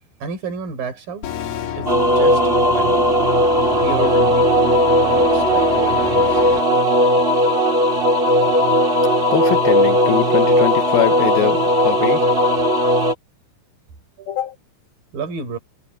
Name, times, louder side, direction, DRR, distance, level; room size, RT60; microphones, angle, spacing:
voice 1, 0.2-1.3 1.8-3.0 3.7-4.5 5.0-6.4 14.2-14.4 15.1-15.6, right 5 dB, 50° right, 8.7 m, -30 dB
sound 1, 1.2-6.6, left 9 dB, 90° left, 5.0 m, -29 dB
sound 2, 1.9-13.1, equal, 20° right, 1.5 m, -17 dB
voice 2, 9.3-12.2 14.3-14.5, left 11 dB, 65° left, 2.9 m, -22 dB
omnidirectional pair, 5.3 m